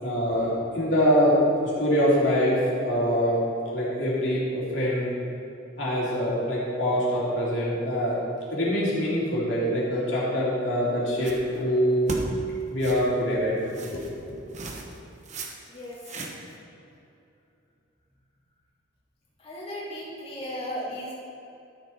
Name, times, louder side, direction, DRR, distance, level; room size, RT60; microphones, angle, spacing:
voice 1, 0.0-3.4 3.7-5.1 5.8-8.2 8.5-12.1 12.7-13.6 13.9-14.0 14.3-14.4, equal, 65° left, -6 dB, 2.7 m, -24 dB
sound 1, 11.1-11.6 12.1-12.2 12.8-13.1 13.7-14.1 14.5-15.0 15.2-15.5 15.8-16.5, right 3 dB, 35° right, 1.0 m, -37 dB
voice 2, 15.7-16.0 19.4-21.1, equal, 30° left, -8 dB, 2.2 m, -35 dB
13.0 x 7.0 x 4.3 m, 2.7 s
head